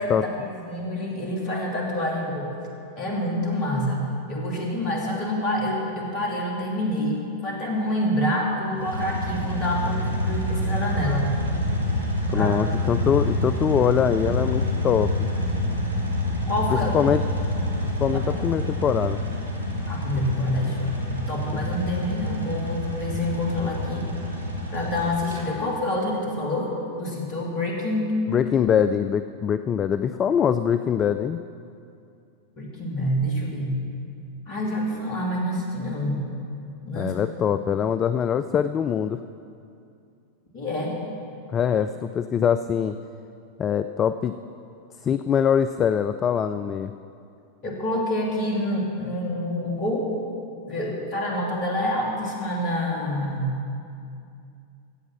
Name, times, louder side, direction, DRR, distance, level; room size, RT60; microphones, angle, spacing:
voice 1, 0.0-2.5 3.0-11.3 12.3-12.6 16.5-16.9 18.1-18.3 19.9-21.0 21.3-24.1 24.7-28.1 32.6-33.7 34.5-36.3 36.9-37.1 40.5-41.0 47.6-50.1 50.7-53.6, left 1 dB, 40° left, -1 dB, 2.9 m, -27 dB
sound 1, 8.7-25.4, left 1 dB, 85° left, 2.3 m, -27 dB
voice 2, 12.3-15.3 16.7-17.2 18.0-19.2 21.5-21.7 28.3-31.4 37.0-39.2 41.5-43.0 43.6-44.4 45.0-46.9, left 8 dB, 25° left, 11 dB, 0.3 m, -23 dB
15.0 x 8.1 x 5.9 m, 2.5 s
figure-of-eight pair, 90°, 0 cm